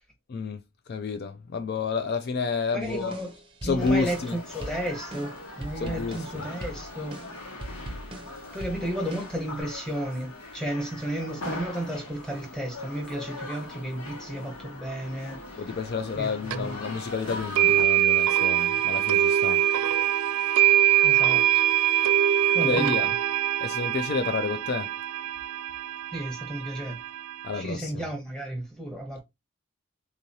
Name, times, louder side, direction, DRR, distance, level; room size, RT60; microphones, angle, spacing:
voice 1, 0.3-0.6 0.9-3.2 3.6-4.4 5.8-6.4 15.6-19.7 20.8-20.9 22.6-23.1 23.6-24.9 27.4-28.0, left 4 dB, 45° left, 0.3 m, -30 dB
voice 2, 2.7-3.3 3.6-7.2 8.5-15.7 16.2-16.7 21.0-21.4 22.5-23.1 26.1-27.0 27.5-29.2, right 1 dB, 5° left, 1.0 m, -33 dB
sound 1, 2.8-9.6, right 1 dB, 25° right, 0.6 m, -41 dB
sound 2, 3.8-17.8, left 2 dB, 85° left, 1.7 m, -41 dB
sound 3, 16.5-16.6 17.5-27.6, right 12 dB, 85° right, 0.4 m, -23 dB
3.7 x 2.9 x 2.6 m
head